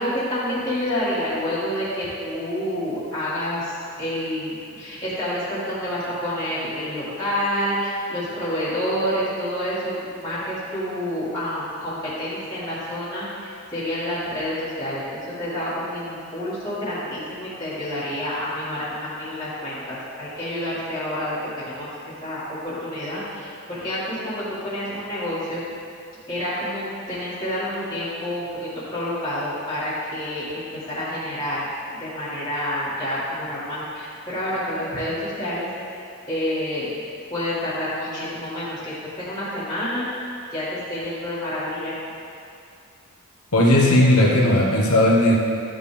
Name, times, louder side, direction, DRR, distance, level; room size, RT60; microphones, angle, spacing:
voice 1, 0.0-21.9 22.2-25.6 26.3-31.6 31.9-36.0 36.3-37.0 37.3-41.9, equal, 20° left, -12 dB, 2.1 m, -28 dB
voice 2, 43.5-45.3, left 1 dB, 80° left, -2 dB, 1.3 m, -16 dB
12.0 x 5.3 x 3.4 m, 2.4 s
head